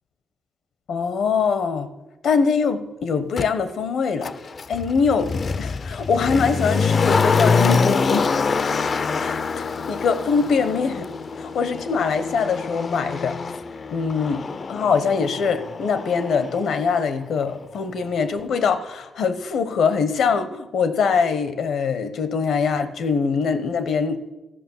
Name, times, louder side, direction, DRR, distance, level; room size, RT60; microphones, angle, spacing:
voice 1, 0.9-1.9 2.2-4.3 4.7-8.3 9.2-11.1 11.4-13.4 13.9-14.4 14.7-24.2, left 5 dB, 75° left, 12 dB, 1.0 m, -23 dB
Motor vehicle (road), 3.4-3.5 4.2-17.1 17.4-17.5, left 5 dB, 40° left, 0.4 m, -25 dB
14.0 x 6.0 x 7.2 m, 1.1 s
wide cardioid pair, 160°, 0 cm